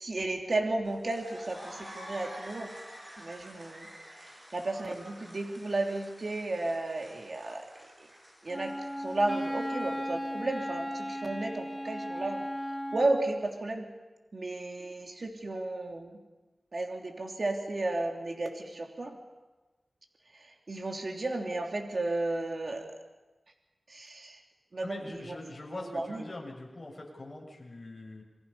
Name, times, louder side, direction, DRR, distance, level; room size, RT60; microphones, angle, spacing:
voice 1, 0.0-2.7 3.2-3.9 4.2-7.6 8.0-8.1 8.4-12.5 12.9-13.9 14.3-16.2 16.7-19.2 20.3-22.9 23.9-24.4 24.7-25.3 25.7-26.2, right 2 dB, 55° right, 2 dB, 3.1 m, -33 dB
sound 1, 0.8-10.2, equal, 20° right, 7.8 m, -49 dB
Wind instrument woodwind instrument, 8.5-13.3, equal, 5° right, 5.8 m, -36 dB
voice 2, 24.8-28.2, left 2 dB, 40° left, 0 dB, 6.8 m, -43 dB
27.5 x 23.5 x 5.6 m, 1.2 s
wide cardioid pair, 70°, 0 cm